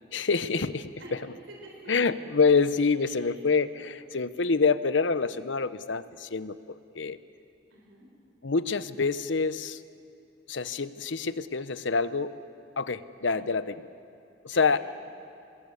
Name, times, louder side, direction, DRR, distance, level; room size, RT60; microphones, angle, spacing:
voice 1, 0.1-0.9 1.9-7.2 8.4-9.8 10.5-12.3 12.8-13.9 14.4-14.8, left 4 dB, 85° left, 14 dB, 0.8 m, -26 dB
voice 2, 1.5-2.0 3.0-3.3 7.7-8.1 13.3-13.6 14.5-14.8, right 2 dB, 80° right, -1 dB, 4.0 m, -49 dB
26.0 x 21.0 x 8.5 m, 2.6 s
head